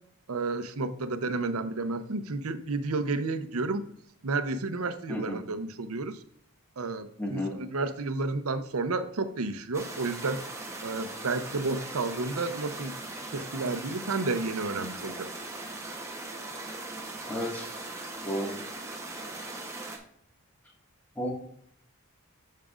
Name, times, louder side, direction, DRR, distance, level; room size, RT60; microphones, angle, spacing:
voice 1, 0.3-3.8 4.2-6.2 6.8-10.4 10.8-12.9 13.3-15.3, right 3 dB, 85° right, 10 dB, 0.7 m, -31 dB
voice 2, 7.2-7.5 17.2-17.7 18.2-18.6 19.3-19.6 21.1-21.3, equal, 10° left, -2 dB, 1.7 m, -33 dB
sound 1, 9.7-20.0, right 2 dB, 15° right, 0.9 m, -39 dB
8.6 x 6.6 x 2.4 m, 0.69 s
head